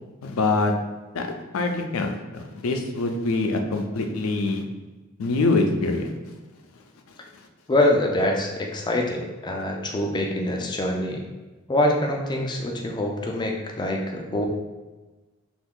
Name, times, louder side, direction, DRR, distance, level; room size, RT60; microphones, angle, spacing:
voice 1, 0.2-0.7 1.1-4.6 5.2-6.1, left 3 dB, 85° left, 4 dB, 0.4 m, -24 dB
voice 2, 7.7-11.2 11.7-14.5, left 1 dB, 20° left, 1 dB, 0.4 m, -24 dB
2.6 x 2.3 x 3.6 m, 1.2 s
head